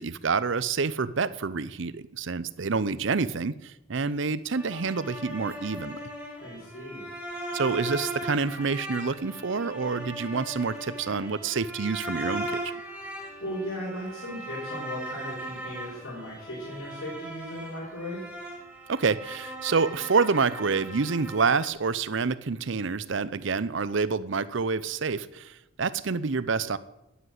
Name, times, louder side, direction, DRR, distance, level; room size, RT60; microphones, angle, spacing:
voice 1, 0.0-6.0 7.5-12.7 18.9-26.8, right 4 dB, 60° right, 17 dB, 0.6 m, -27 dB
sound 1, 4.5-21.7, right 1 dB, 5° right, 2.9 m, -38 dB
voice 2, 6.4-7.0 13.4-18.2, equal, 85° left, -7 dB, 4.9 m, -37 dB
11.0 x 10.0 x 8.0 m, 0.92 s
head